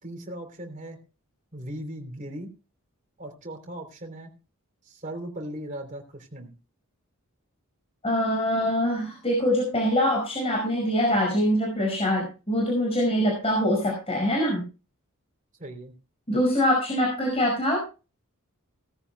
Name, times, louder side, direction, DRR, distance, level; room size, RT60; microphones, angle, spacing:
voice 1, 0.0-1.0 1.5-2.5 3.2-4.3 4.9-6.5 15.6-15.9, right 1 dB, 35° right, 3 dB, 3.3 m, -38 dB
voice 2, 8.0-14.6 16.3-17.8, equal, 25° left, -1 dB, 5.1 m, -24 dB
18.0 x 14.0 x 2.2 m, 0.32 s
head